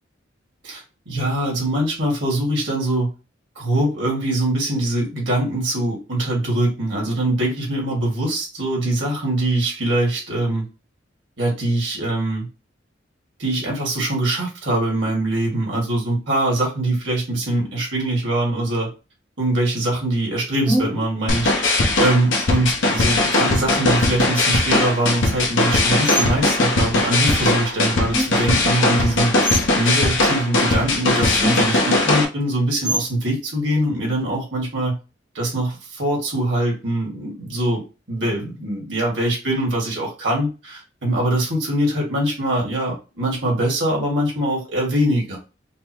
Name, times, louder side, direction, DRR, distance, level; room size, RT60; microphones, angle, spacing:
voice 1, 0.6-3.1 3.6-10.6 11.4-12.5 13.4-18.9 19.4-29.3 29.7-35.0 35.3-37.8 38.1-45.4, right 1 dB, 80° right, -1 dB, 1.8 m, -23 dB
sound 1, 20.6-21.1 22.4-22.9 23.8-24.1 24.7-25.2 26.0-26.3 28.1-28.6 29.4-29.8 30.8-31.0 31.4-32.0 32.8-33.2, right 1 dB, 5° right, 0.7 m, -26 dB
sound 2, 21.3-32.2, left 2 dB, 80° left, 0.8 m, -19 dB
5.2 x 2.0 x 3.0 m, 0.30 s
head